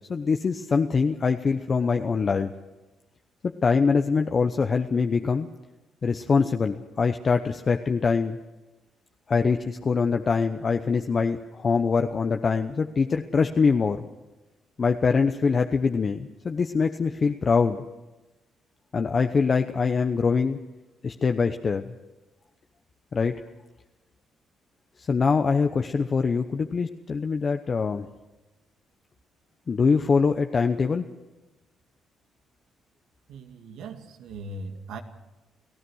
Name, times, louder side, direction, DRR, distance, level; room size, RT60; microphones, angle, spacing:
voice 1, 0.1-2.5 3.6-5.5 6.0-8.4 9.3-14.1 14.8-17.8 18.9-20.6 21.0-21.9 23.1-23.3 25.0-28.1 29.7-31.1, left 5 dB, 40° left, 6 dB, 0.9 m, -23 dB
voice 2, 33.3-35.0, right 2 dB, 85° right, 5 dB, 2.2 m, -39 dB
30.0 x 15.5 x 6.4 m, 1.1 s
cardioid pair, 90°, 0 cm